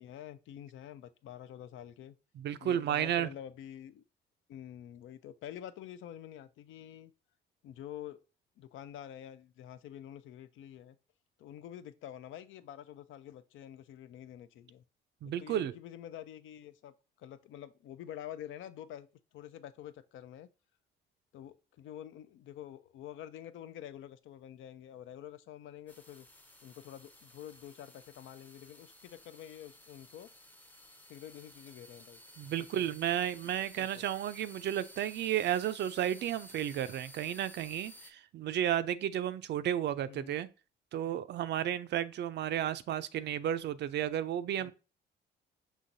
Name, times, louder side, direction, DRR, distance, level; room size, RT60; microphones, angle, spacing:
voice 1, 0.0-2.2 2.6-4.0 4.5-7.1 7.6-8.2 8.6-11.0 11.4-14.8 15.4-19.1 19.3-20.5 21.3-26.3 26.6-30.3 31.1-32.2 32.7-32.8 33.8-34.0 40.1-40.4 44.6-44.7, left 11 dB, 80° left, 0.4 m, -47 dB
voice 2, 2.4-3.3 15.2-15.7 32.4-40.5 40.9-44.7, right 11 dB, 60° right, 0.4 m, -33 dB
sound 1, 25.9-38.1, equal, 10° left, 0.6 m, -55 dB
5.6 x 3.0 x 2.6 m
cardioid pair, 90°, 20 cm